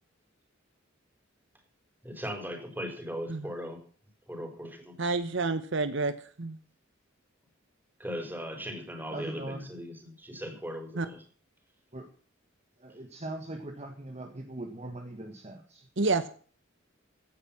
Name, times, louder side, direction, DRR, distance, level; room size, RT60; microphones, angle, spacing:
voice 1, 2.0-3.8 4.3-5.0 8.0-11.2, equal, 10° right, 5 dB, 4.5 m, -38 dB
voice 2, 5.0-6.6 11.0-11.1 16.0-16.3, right 3 dB, 65° right, 12 dB, 1.0 m, -29 dB
voice 3, 9.1-9.7 11.9-12.1 12.8-15.9, right 2 dB, 35° right, 5 dB, 1.7 m, -40 dB
16.0 x 10.0 x 6.0 m, 0.43 s
head